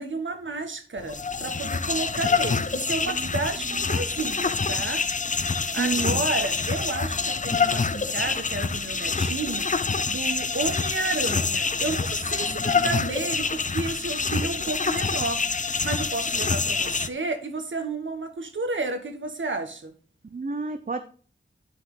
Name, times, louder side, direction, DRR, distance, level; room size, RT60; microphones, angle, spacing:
voice 1, 0.0-5.1 5.4-9.7 10.1-19.9, right 3 dB, 75° right, 7 dB, 1.6 m, -31 dB
sound 1, 1.0-17.1, left 4 dB, 40° left, 0.6 m, -26 dB
voice 2, 5.8-6.3 12.4-12.9 20.3-21.0, right 4 dB, 45° right, 7 dB, 0.8 m, -31 dB
10.5 x 5.9 x 3.8 m, 0.40 s
wide cardioid pair, 85°, 20 cm